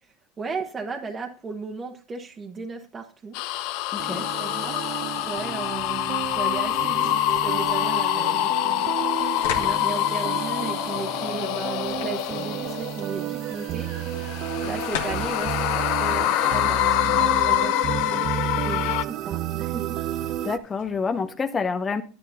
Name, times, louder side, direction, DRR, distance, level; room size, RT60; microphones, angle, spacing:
voice 1, 0.0-3.4 4.1-4.8 5.3-9.0 9.2-14.4 14.6-20.0, right 4 dB, 25° right, 2 dB, 1.1 m, -36 dB
sound 1, 3.3-13.2 13.8-19.0, left 15 dB, 60° left, 0.4 m, -25 dB
voice 2, 3.9-4.3 20.4-22.0, left 5 dB, 20° left, 7 dB, 0.7 m, -27 dB
sound 2, 4.0-20.6, right 12 dB, 50° right, 0.6 m, -32 dB
sound 3, 6.8-21.3, left 6 dB, 85° left, 1.8 m, -42 dB
10.5 x 9.6 x 2.7 m, 0.40 s
supercardioid pair, 115°, 0 cm